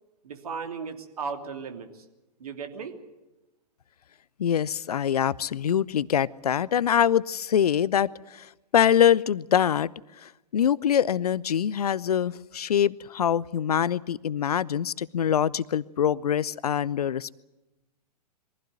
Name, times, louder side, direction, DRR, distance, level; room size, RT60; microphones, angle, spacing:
voice 1, 0.2-2.0 2.4-2.9, right 5 dB, 60° right, 6 dB, 2.9 m, -36 dB
voice 2, 4.4-9.9 10.2-17.4, left 9 dB, 65° left, 21 dB, 0.7 m, -24 dB
22.5 x 15.5 x 9.2 m, 1.0 s
figure-of-eight pair, 110°, 21 cm